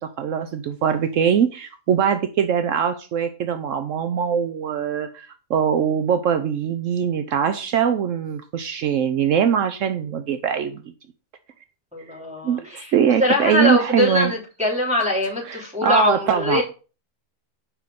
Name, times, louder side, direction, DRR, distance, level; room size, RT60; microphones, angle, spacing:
voice 1, 0.2-10.8 12.4-14.3 15.5-16.6, right 8 dB, 75° right, 9 dB, 1.0 m, -22 dB
voice 2, 11.9-12.9 13.2-16.6, left 1 dB, 5° right, -4 dB, 3.4 m, -22 dB
7.5 x 5.5 x 5.1 m, 0.34 s
omnidirectional pair, 1.4 m